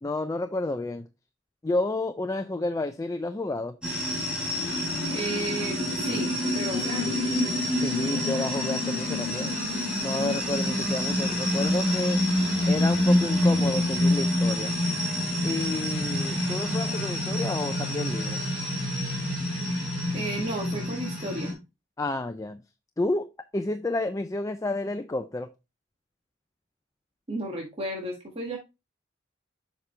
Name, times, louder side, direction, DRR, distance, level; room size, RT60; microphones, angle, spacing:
voice 1, 0.0-1.1 1.6-3.8 7.6-9.6 10.0-12.2 12.7-14.7 15.4-18.4 22.0-22.6 23.0-25.5, left 2 dB, 15° left, 0.4 m, -30 dB
sound 1, 3.8-21.5, left 1 dB, 5° right, 3.3 m, -27 dB
voice 2, 5.1-7.2 20.1-21.6 27.3-28.6, right 1 dB, 30° right, 1.6 m, -33 dB
7.2 x 5.2 x 3.2 m
head